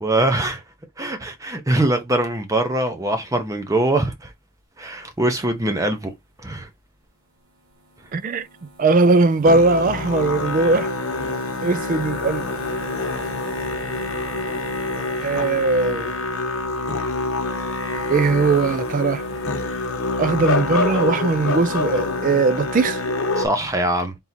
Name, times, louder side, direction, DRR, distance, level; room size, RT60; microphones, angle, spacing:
voice 1, 0.0-0.6 1.0-4.3 4.8-6.1 6.4-6.7 23.4-24.1, right 1 dB, 15° right, 0.7 m, -22 dB
sound 1, 7.4-22.3, right 1 dB, 80° right, 2.3 m, -43 dB
voice 2, 8.1-8.5 8.8-10.9 11.6-12.4 15.2-16.1 18.1-19.2 20.2-23.0, right 3 dB, 35° right, 0.3 m, -19 dB
Musical instrument, 9.4-23.5, left 3 dB, 70° left, 0.9 m, -26 dB
3.6 x 2.9 x 4.1 m
head